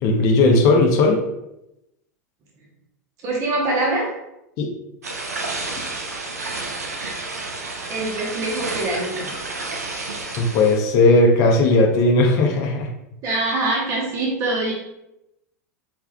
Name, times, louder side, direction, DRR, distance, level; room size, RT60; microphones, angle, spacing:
voice 1, 0.0-1.2 4.6-4.7 10.4-12.9, left 2 dB, 40° left, 3 dB, 0.6 m, -16 dB
voice 2, 3.2-4.0 7.9-9.3 13.2-14.7, right 2 dB, 40° right, -3 dB, 1.0 m, -24 dB
sound 1, 5.0-10.8, right 3 dB, 75° right, 0.6 m, -30 dB
4.7 x 3.3 x 2.3 m, 0.88 s
figure-of-eight pair, 85°, 9 cm